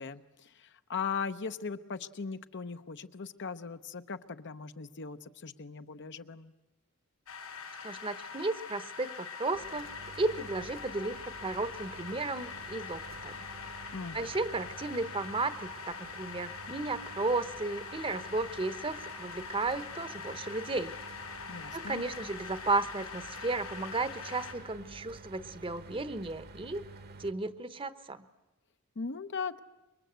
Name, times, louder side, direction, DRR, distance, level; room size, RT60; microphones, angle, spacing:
voice 1, 0.0-6.5 13.9-14.2 21.5-22.0 29.0-29.6, left 5 dB, 55° left, 10 dB, 0.8 m, -39 dB
sound 1, 7.3-24.5, left 5 dB, 80° left, 6.1 m, -43 dB
voice 2, 7.8-9.9 10.2-13.4 14.1-21.0 21.7-26.8 27.2-28.2, right 3 dB, 25° right, 13 dB, 0.9 m, -34 dB
Mechanical fan, 9.5-27.3, right 3 dB, 45° right, 1.1 m, -50 dB
27.0 x 23.0 x 8.1 m, 1.0 s
head